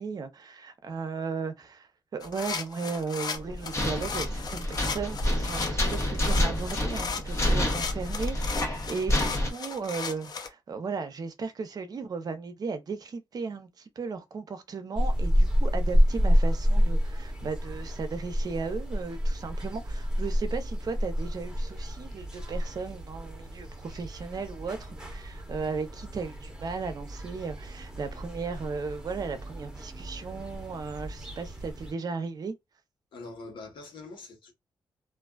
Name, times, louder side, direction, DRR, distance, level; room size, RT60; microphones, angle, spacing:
voice 1, 0.0-32.5, right 4 dB, 50° right, 0.6 m, -36 dB
sound 1, 2.2-10.5, left 5 dB, 55° left, 0.6 m, -36 dB
sound 2, 3.4-9.5, left 1 dB, 35° left, 0.9 m, -28 dB
sound 3, 15.0-31.9, equal, 10° right, 1.0 m, -29 dB
voice 2, 33.1-34.5, left 3 dB, 80° left, 1.2 m, -43 dB
2.5 x 2.2 x 2.3 m
cardioid pair, 90°, 8 cm